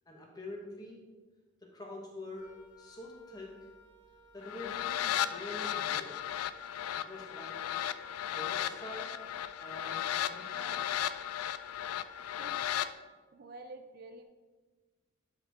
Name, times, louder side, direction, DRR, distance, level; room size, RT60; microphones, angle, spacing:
voice 1, 0.1-1.0 1.7-2.5 2.8-3.5 4.3-6.1 7.0-7.6 8.3-9.1 9.6-10.9, left 1 dB, 20° left, -1 dB, 1.2 m, -45 dB
Wind instrument woodwind instrument, 2.3-12.8, left 4 dB, 35° left, 1.9 m, -57 dB
sound 1, 4.4-12.9, left 11 dB, 90° left, 0.3 m, -35 dB
voice 2, 13.3-14.2, right 2 dB, 45° right, 7 dB, 0.4 m, -48 dB
11.0 x 4.6 x 3.5 m, 1.4 s
head